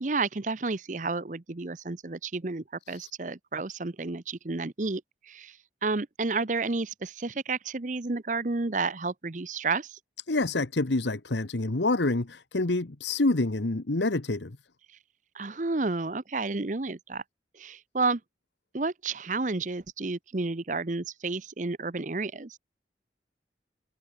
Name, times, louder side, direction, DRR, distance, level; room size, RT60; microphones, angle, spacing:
voice 1, 0.0-5.6 5.8-10.0 15.3-17.2 17.5-18.2 18.7-22.6, right 3 dB, 45° right, 0.8 m, -31 dB
voice 2, 10.3-14.5, left 2 dB, 80° left, 1.2 m, -27 dB
head